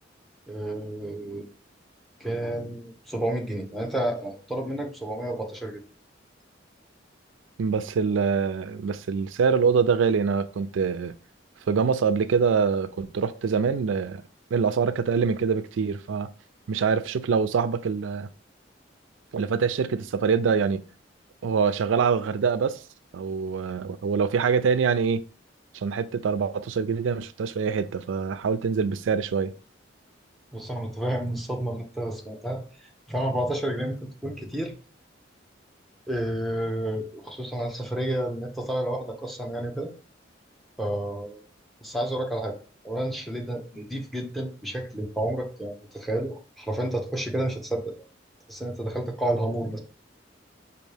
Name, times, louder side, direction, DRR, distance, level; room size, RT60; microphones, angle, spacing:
voice 1, 0.5-1.4 2.2-5.8 30.5-34.0 34.2-34.7 36.1-39.9 40.8-41.4 41.8-42.6 42.8-47.9 48.5-49.8, right 1 dB, ahead, 0.8 m, -30 dB
voice 2, 7.6-11.1 11.7-14.2 14.5-16.3 16.7-18.3 19.3-20.8 21.4-22.8 23.1-25.2 25.7-29.5, right 6 dB, 85° right, 0.4 m, -24 dB
5.2 x 2.6 x 3.3 m
head